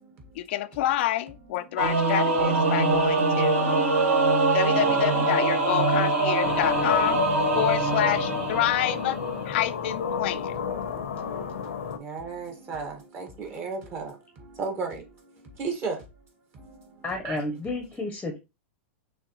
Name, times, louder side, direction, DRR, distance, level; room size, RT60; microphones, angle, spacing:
voice 1, 0.4-3.7 4.5-7.2 7.5-9.2 9.5-10.6, left 13 dB, 60° left, 0.5 m, -28 dB
Singing / Musical instrument, 1.8-9.5, right 2 dB, 85° right, 2.2 m, -23 dB
sound 1, 6.4-12.0, left 6 dB, 85° left, 1.0 m, -32 dB
voice 2, 12.0-14.1 14.6-15.0 15.6-16.0 17.2-17.4, right 4 dB, 30° right, 1.7 m, -33 dB
voice 3, 17.0-18.4, left 2 dB, 10° left, 0.9 m, -31 dB
6.2 x 2.8 x 3.0 m
hypercardioid pair, 130°, 7 cm